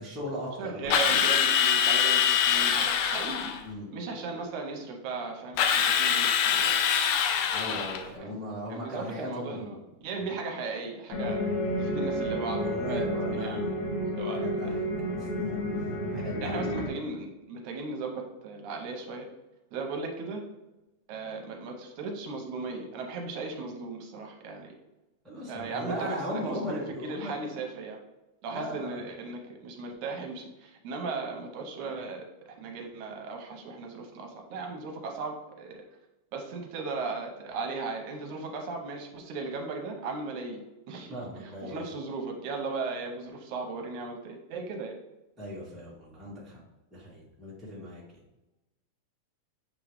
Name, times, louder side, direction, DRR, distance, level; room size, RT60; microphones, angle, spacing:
voice 1, 0.0-1.3 3.6-3.9 7.5-9.9 10.2-10.3 12.6-13.9 14.3-14.8 15.2-15.5 15.8-16.9 25.2-27.4 28.5-29.0 41.1-41.8 45.4-46.6 46.9-48.2, equal, ahead, -7 dB, 1.4 m, -38 dB
voice 2, 0.6-3.5 3.9-6.7 7.7-8.4 8.7-11.5 11.8-13.0 13.3-13.7 14.2-14.7 16.4-19.3 19.7-20.4 21.1-24.7 25.5-28.0 28.4-32.3 32.6-35.8 36.3-40.6 40.9-44.9, right 3 dB, 80° right, 2 dB, 2.3 m, -37 dB
Drill, 0.9-3.6 5.6-8.1, left 8 dB, 80° left, 1.6 m, -24 dB
sound 1, 11.1-16.9, equal, 65° left, 3.3 m, -31 dB
7.7 x 3.7 x 3.4 m, 1.0 s
omnidirectional pair, 3.4 m